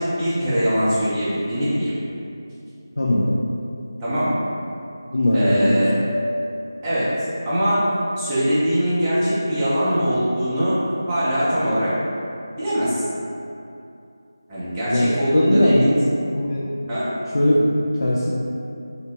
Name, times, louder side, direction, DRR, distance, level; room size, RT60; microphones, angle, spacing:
voice 1, 0.0-1.9 4.0-4.4 5.3-5.9 6.8-7.2 7.4-10.8 11.1-11.9 12.6-13.0 14.5-15.9 16.9-17.1, equal, 10° right, -13 dB, 0.4 m, -22 dB
voice 2, 3.0-3.4 5.1-5.8 14.9-16.0 16.3-16.7 17.3-18.3, left 1 dB, 75° left, -6 dB, 0.3 m, -19 dB
2.7 x 2.1 x 2.8 m, 2.6 s
figure-of-eight pair, 175°, 2 cm